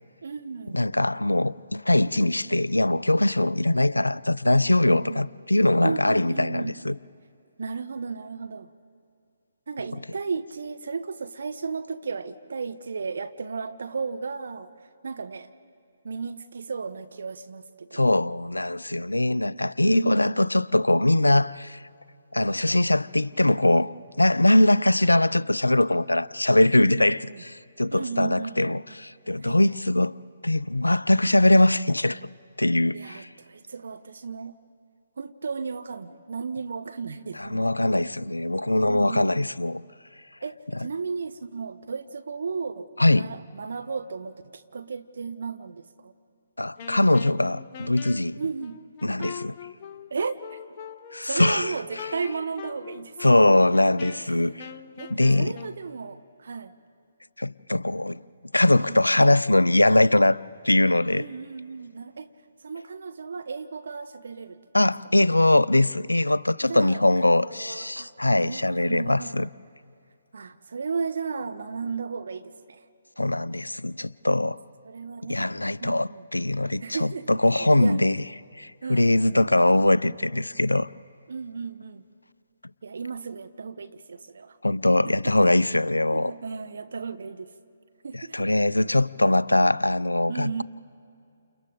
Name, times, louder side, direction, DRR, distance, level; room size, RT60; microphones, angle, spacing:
voice 1, 0.2-0.8 4.8-5.2 5.8-6.8 7.6-8.7 9.7-14.7 15.0-15.5 16.0-18.2 19.8-20.3 26.8-27.4 27.9-28.8 29.4-29.6 32.9-34.6 35.2-37.7 38.9-39.6 40.4-46.1 48.4-48.8 49.2-49.3 50.1-50.6 51.3-53.5 54.2-54.5 55.0-56.7 58.9-59.0 61.1-62.3 62.6-64.6 65.0-65.1 66.6-67.0 67.3-69.5 70.3-72.8 74.8-76.3 76.8-77.3 77.6-78.0 78.8-79.7 81.3-82.0 82.8-84.6 85.1-85.3 86.1-87.5 88.0-88.5 90.3-90.6, right 5 dB, 60° right, 0.8 m, -34 dB
voice 2, 0.7-7.0 17.9-21.8 22.3-23.9 24.2-30.1 30.4-32.2 32.6-33.3 37.4-39.8 43.0-43.3 46.6-48.4 49.0-49.6 51.1-51.7 53.2-54.7 55.1-55.5 57.4-58.2 58.5-60.4 60.6-61.2 64.7-69.5 73.2-74.6 75.3-78.2 78.6-80.9 84.6-86.3 88.1-90.6, left 1 dB, 85° left, 0.4 m, -22 dB
Wind instrument woodwind instrument, 46.8-55.8, left 8 dB, 35° left, 0.7 m, -42 dB
29.5 x 29.0 x 3.9 m
figure-of-eight pair, 135°, 0 cm